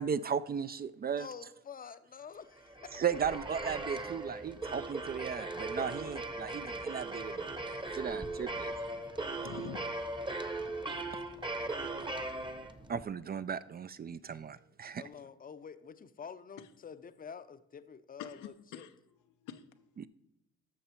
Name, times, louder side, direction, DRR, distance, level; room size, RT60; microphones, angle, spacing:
voice 1, 0.0-1.3 3.0-8.7 12.9-15.0 20.0-20.1, right 7 dB, 30° right, 0.4 m, -36 dB
voice 2, 1.2-2.4 2.9-3.0 14.9-18.9, left 6 dB, 30° left, 0.6 m, -48 dB
sound 1, 2.6-13.0, right 2 dB, 15° right, 0.9 m, -39 dB
voice 3, 9.3-9.8 10.8-11.2 16.6-16.7 18.2-19.0 19.4-20.1, left 10 dB, 90° left, 0.8 m, -48 dB
12.5 x 6.6 x 4.4 m
cardioid pair, 90°, 30 cm